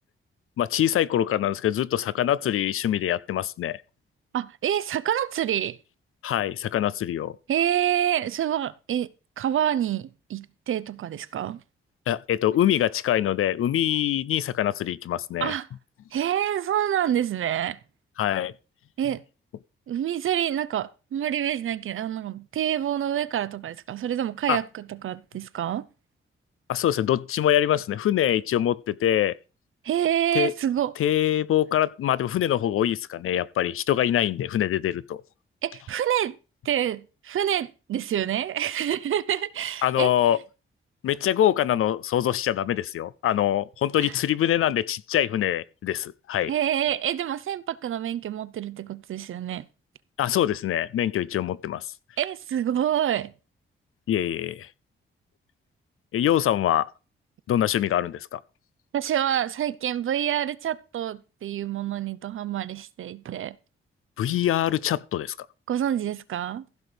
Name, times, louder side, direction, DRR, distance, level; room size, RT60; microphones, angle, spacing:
voice 1, 0.6-3.8 6.2-7.4 12.1-15.5 18.2-18.5 24.5-24.6 26.7-29.3 30.3-30.5 31.0-35.2 39.8-40.4 41.0-46.5 50.2-51.9 54.1-54.7 56.1-56.9 57.5-58.4 64.2-65.4, left 11 dB, 80° left, 0.6 m, -24 dB
voice 2, 4.3-5.8 7.5-9.1 9.4-11.6 15.4-15.7 16.1-17.8 19.0-19.2 19.9-25.9 29.8-30.9 35.6-36.4 36.6-40.1 44.0-44.1 46.5-49.7 52.2-53.3 58.9-63.6 65.7-66.7, right 10 dB, 75° right, 0.7 m, -27 dB
15.0 x 6.1 x 5.1 m
cardioid pair, 90°, 21 cm